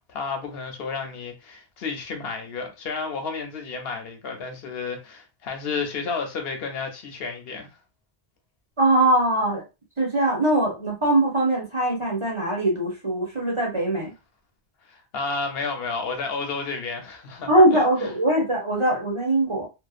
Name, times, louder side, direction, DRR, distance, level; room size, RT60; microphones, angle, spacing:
voice 1, 0.0-7.7 14.9-18.1, left 4 dB, 75° left, 0.8 m, -31 dB
voice 2, 8.8-9.6 10.0-14.1 17.5-19.7, right 1 dB, 35° right, 0.7 m, -21 dB
2.7 x 2.1 x 2.4 m
omnidirectional pair, 1.0 m